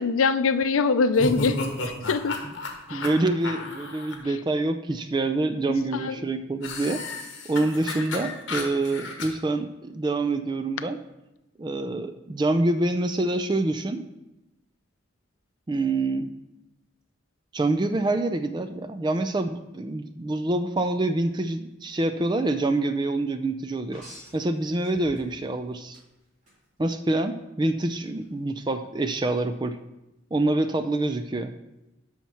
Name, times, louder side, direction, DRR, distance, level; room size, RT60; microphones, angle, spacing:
voice 1, 0.0-1.6 1.8-2.4 2.9-3.0 5.9-6.2, left 4 dB, 90° left, 12 dB, 0.5 m, -23 dB
sound 1, 1.1-4.1 6.6-9.3, left 2 dB, 60° left, 1.4 m, -32 dB
voice 2, 2.9-7.0 7.4-11.0 11.6-14.0 15.7-16.3 17.5-24.0 24.3-26.0 26.8-29.8 30.3-31.5, right 2 dB, 20° right, 8 dB, 0.4 m, -26 dB
sound 2, 23.9-25.5 25.9-26.6 28.1-28.2, equal, 35° right, 3.5 m, -47 dB
7.4 x 5.8 x 5.6 m, 0.96 s
head